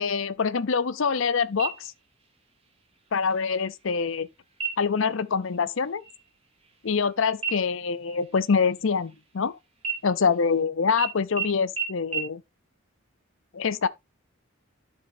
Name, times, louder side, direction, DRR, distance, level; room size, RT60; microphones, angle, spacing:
voice 1, 0.0-1.9 3.1-4.3 4.8-6.0 6.8-9.5 10.0-12.4 13.5-13.9, left 5 dB, 65° left, 0.6 m, -25 dB
sound 1, 1.6-2.3 2.7-2.8 3.3-3.8 4.5-5.1 5.4-5.7 6.0-7.1 7.4-9.4 9.8-10.6 11.0-11.1 11.4-11.5 11.8-11.9 12.1-12.2, right 6 dB, 25° right, 3.0 m, -34 dB
12.0 x 6.8 x 2.7 m
head